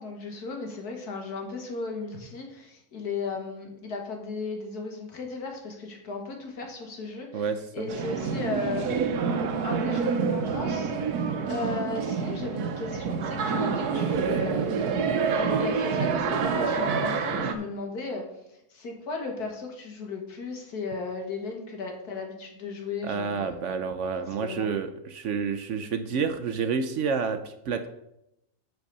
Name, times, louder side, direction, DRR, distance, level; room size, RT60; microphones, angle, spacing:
voice 1, 0.0-7.5 7.7-9.1 9.6-10.9 11.4-18.3 18.7-23.6 24.4-24.7, left 3 dB, 90° left, 2 dB, 2.1 m, -35 dB
voice 2, 7.3-7.9 23.0-27.9, right 5 dB, 65° right, 9 dB, 0.9 m, -29 dB
sound 1, 7.9-17.5, right 5 dB, 80° right, 1.3 m, -27 dB
7.8 x 4.7 x 6.7 m, 0.83 s
omnidirectional pair, 1.6 m